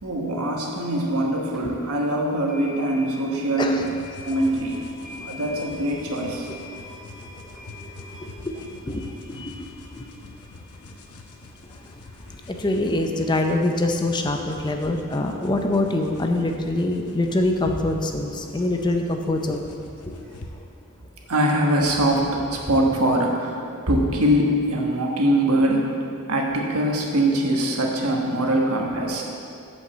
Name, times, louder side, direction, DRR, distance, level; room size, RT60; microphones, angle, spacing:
voice 1, 0.0-3.8 4.2-4.9 5.2-6.5 21.3-25.9 26.3-29.2, right 1 dB, 75° right, 0 dB, 1.3 m, -22 dB
sound 1, 1.5-1.6 2.5-13.5, left 2 dB, ahead, 1.7 m, -45 dB
sound 2, 3.8-20.5, left 2 dB, 80° left, 0.9 m, -45 dB
voice 2, 12.5-19.6, left 2 dB, 20° left, 4 dB, 0.5 m, -24 dB
8.2 x 5.3 x 7.3 m, 2.5 s
head